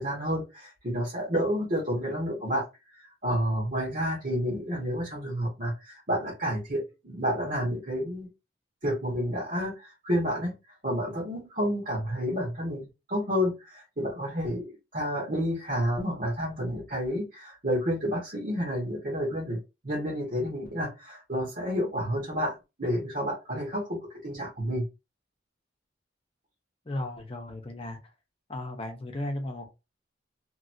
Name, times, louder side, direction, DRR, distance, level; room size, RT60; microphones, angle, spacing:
voice 1, 0.0-2.6 3.2-8.3 8.8-10.5 10.8-14.7 14.9-19.6 19.8-24.9, equal, 45° right, 1.4 m, -30 dB
voice 2, 26.8-28.0 28.5-29.7, left 1 dB, 30° left, 0.8 m, -35 dB
3.0 x 2.7 x 2.7 m
head